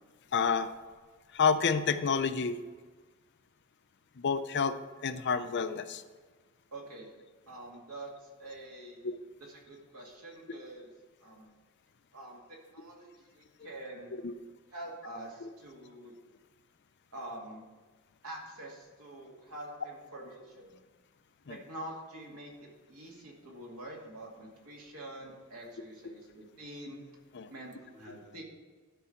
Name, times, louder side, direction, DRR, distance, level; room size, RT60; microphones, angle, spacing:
voice 1, 0.3-0.7 1.3-2.6 4.2-6.0 9.0-9.2 14.1-14.3 15.4-15.5 21.5-21.6 27.3-27.5, left 5 dB, 50° left, 10 dB, 0.5 m, -29 dB
voice 2, 6.7-7.1 7.5-9.0 9.5-10.9 11.2-11.5 12.1-14.1 14.7-16.2 17.1-17.7 18.2-20.8 21.5-22.5 22.9-27.0 27.5-28.4, right 1 dB, 85° right, -2 dB, 2.4 m, -46 dB
12.5 x 4.8 x 5.8 m, 1.4 s
head